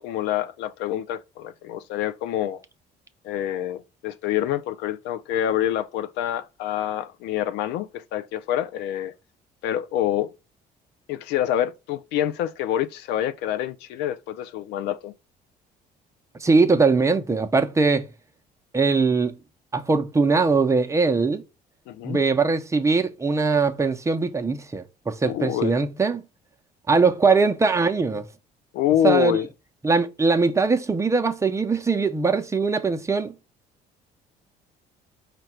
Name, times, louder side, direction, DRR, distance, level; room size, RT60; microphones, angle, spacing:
voice 1, 0.0-2.6 3.2-9.1 9.6-10.3 11.1-15.1 21.9-22.2 25.2-25.7 28.7-29.5, left 11 dB, 90° left, 0.5 m, -26 dB
voice 2, 16.4-18.1 18.7-19.4 19.7-21.4 22.0-26.2 26.9-28.2 29.0-29.4 29.8-33.3, right 4 dB, 15° right, 0.5 m, -21 dB
5.1 x 2.2 x 4.3 m
cardioid pair, 110°, 17 cm